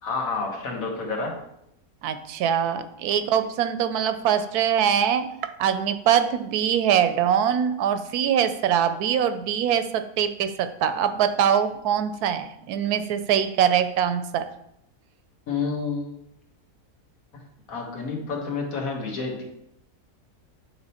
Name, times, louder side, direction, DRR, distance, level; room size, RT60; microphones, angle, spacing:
voice 1, 0.0-1.3 15.5-16.2 17.7-19.4, left 4 dB, 65° left, 1 dB, 1.7 m, -29 dB
voice 2, 2.0-5.2 5.6-14.4, right 9 dB, 85° right, 10 dB, 1.1 m, -23 dB
8.9 x 3.6 x 4.2 m, 0.78 s
omnidirectional pair, 1.6 m